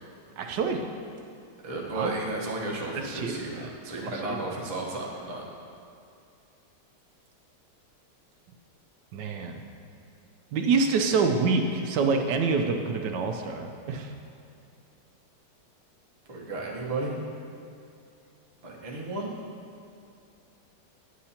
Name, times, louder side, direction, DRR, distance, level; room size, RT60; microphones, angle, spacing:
voice 1, 0.4-0.8 1.9-2.1 2.9-3.7 4.0-4.5 9.1-9.6 10.5-14.1, right 4 dB, 80° right, 4 dB, 1.2 m, -27 dB
voice 2, 1.6-5.4 16.3-17.2 18.6-19.3, right 2 dB, 25° right, -4 dB, 0.8 m, -33 dB
9.9 x 7.7 x 2.8 m, 2.5 s
omnidirectional pair, 1.9 m